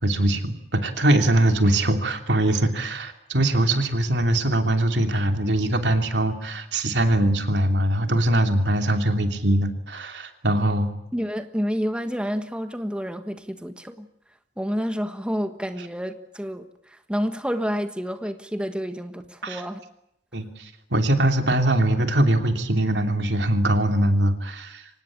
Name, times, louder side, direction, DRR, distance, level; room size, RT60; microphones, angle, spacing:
voice 1, 0.0-10.9 19.4-19.6 20.3-24.9, right 1 dB, 90° right, 3.0 m, -22 dB
voice 2, 11.1-14.1 14.6-19.8, equal, 5° right, 1.4 m, -29 dB
24.5 x 19.5 x 8.7 m
head